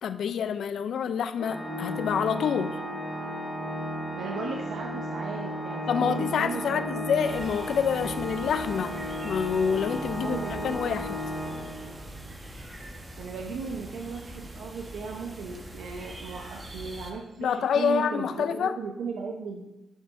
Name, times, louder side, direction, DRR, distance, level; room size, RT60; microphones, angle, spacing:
voice 1, 0.0-2.8 5.9-8.9 9.2-10.4 10.6-11.2 17.4-18.7, left 7 dB, 75° left, 10 dB, 0.4 m, -27 dB
Organ, 1.4-12.2, equal, 15° right, 2.3 m, -34 dB
voice 2, 4.2-6.9 10.1-10.8 13.2-19.7, right 5 dB, 85° right, 0 dB, 0.7 m, -37 dB
sound 1, 7.2-17.1, right 1 dB, 30° right, 1.2 m, -43 dB
12.5 x 5.4 x 2.6 m, 0.94 s
cardioid pair, 90°, 0 cm